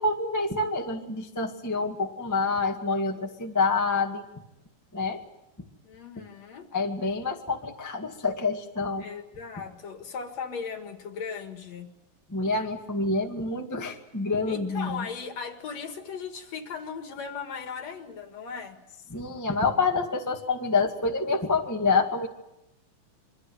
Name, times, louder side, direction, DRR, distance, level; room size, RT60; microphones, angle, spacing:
voice 1, 0.0-4.2 4.9-5.2 6.7-9.0 12.3-15.0 19.1-22.3, left 3 dB, 10° left, 2 dB, 0.9 m, -27 dB
voice 2, 5.8-6.7 9.0-11.9 14.5-18.8, left 6 dB, 55° left, 7 dB, 2.7 m, -37 dB
27.5 x 23.5 x 8.0 m, 0.89 s
omnidirectional pair, 4.2 m